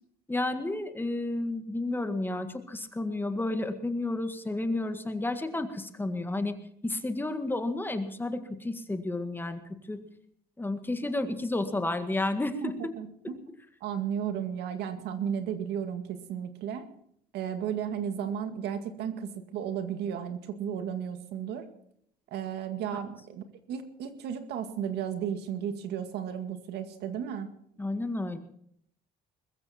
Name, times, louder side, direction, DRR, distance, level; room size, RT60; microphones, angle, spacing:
voice 1, 0.3-6.5 6.8-10.0 10.6-12.8 27.8-28.4, left 2 dB, 10° left, 8 dB, 1.8 m, -31 dB
voice 2, 12.6-13.5 13.8-16.9 17.3-21.7 22.3-27.5, right 8 dB, 80° right, 8 dB, 2.1 m, -34 dB
21.5 x 14.5 x 4.4 m, 0.67 s
cardioid pair, 110°, 17 cm